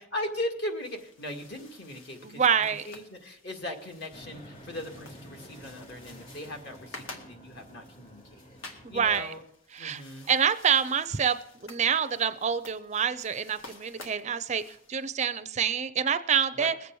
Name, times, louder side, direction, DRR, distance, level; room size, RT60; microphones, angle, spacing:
voice 1, 0.0-8.4 8.7-9.4 9.8-10.3 16.5-16.7, left 1 dB, 55° left, 3 dB, 2.0 m, -38 dB
sound 1, 0.6-15.4, left 2 dB, 75° left, 2.0 m, -51 dB
voice 2, 2.2-2.9 8.8-9.3 9.7-10.0 10.3-16.7, right 7 dB, 35° right, 12 dB, 0.4 m, -27 dB
sound 2, 4.1-9.2, equal, 35° left, 3.2 m, -50 dB
21.0 x 8.3 x 4.7 m, 0.74 s
head